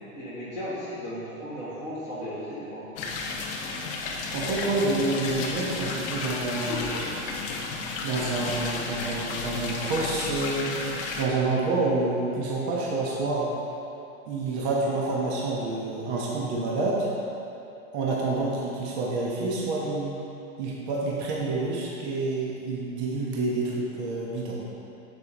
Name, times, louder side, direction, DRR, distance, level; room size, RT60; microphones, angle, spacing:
voice 1, 0.1-2.9 4.9-5.1, equal, 15° right, -11 dB, 1.3 m, -36 dB
sound 1, 3.0-11.3, left 3 dB, 20° left, 0.4 m, -32 dB
voice 2, 4.3-6.8 8.0-10.7 11.2-13.5 14.3-17.1 17.9-20.1 20.6-24.6, right 3 dB, 50° right, -4 dB, 1.2 m, -28 dB
8.0 x 7.0 x 3.0 m, 2.8 s
hypercardioid pair, 130°, 43 cm